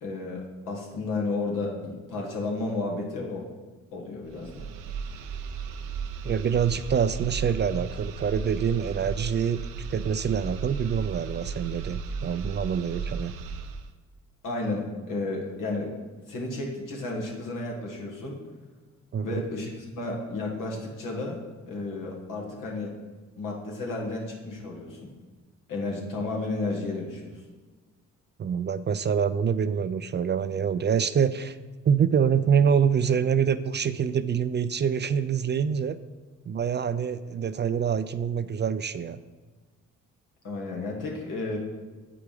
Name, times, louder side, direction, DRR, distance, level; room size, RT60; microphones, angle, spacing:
voice 1, 0.0-3.5 3.9-4.7 14.4-15.9 16.3-18.4 19.2-21.4 21.7-22.9 23.4-25.1 25.7-27.4 40.4-41.6, left 2 dB, 80° left, -1 dB, 1.8 m, -32 dB
sound 1, 4.3-13.9, right 5 dB, 85° right, 0.6 m, -35 dB
voice 2, 6.2-9.6 9.9-13.3 19.1-19.4 28.4-31.6 31.8-36.0 36.5-39.2, right 7 dB, 35° right, 14 dB, 0.4 m, -26 dB
7.8 x 4.9 x 5.0 m, 1.3 s
supercardioid pair, 55°, 32 cm